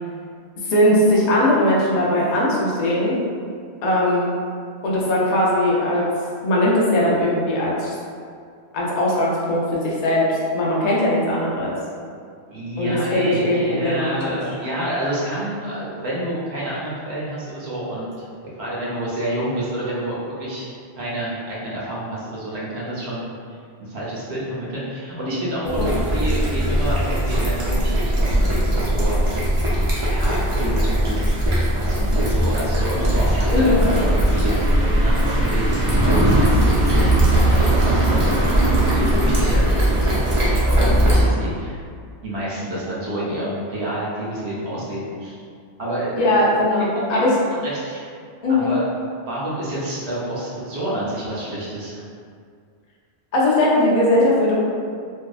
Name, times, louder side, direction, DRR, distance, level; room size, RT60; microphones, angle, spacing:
voice 1, 0.6-3.2 3.8-4.3 4.8-6.1 6.4-7.9 8.7-11.7 12.8-14.4 25.7-25.9 33.5-33.8 46.2-47.3 48.4-48.8 53.3-54.5, left 1 dB, 55° left, -5 dB, 0.5 m, -19 dB
voice 2, 12.5-20.7 21.0-23.3 23.8-29.3 30.0-31.3 31.7-41.8 42.2-45.4 45.8-46.2 46.7-47.3 47.6-48.0 48.5-48.9 49.3-52.0, right 1 dB, 70° right, -7 dB, 1.0 m, -29 dB
sound 1, 25.7-41.3, right 1 dB, 45° right, 0.4 m, -19 dB
2.6 x 2.1 x 2.3 m, 2.2 s
omnidirectional pair, 1.2 m